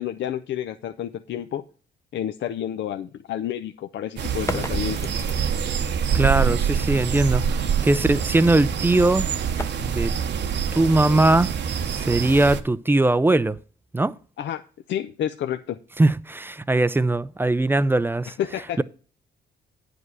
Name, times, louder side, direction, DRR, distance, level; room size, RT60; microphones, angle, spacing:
voice 1, 0.0-1.6 2.1-5.3 14.4-14.6 14.9-15.8 18.4-18.8, left 10 dB, 65° left, 0.6 m, -30 dB
sound 1, 4.2-12.6, right 7 dB, 60° right, 1.0 m, -25 dB
sound 2, 4.3-5.9 8.6-11.5, left 2 dB, 15° left, 0.8 m, -37 dB
voice 2, 6.1-9.3 9.8-10.1 10.7-11.5 11.9-13.6 13.9-14.1 16.0-18.3 18.8-18.9, right 2 dB, 10° right, 0.5 m, -20 dB
9.6 x 5.2 x 6.1 m
cardioid pair, 90°, 20 cm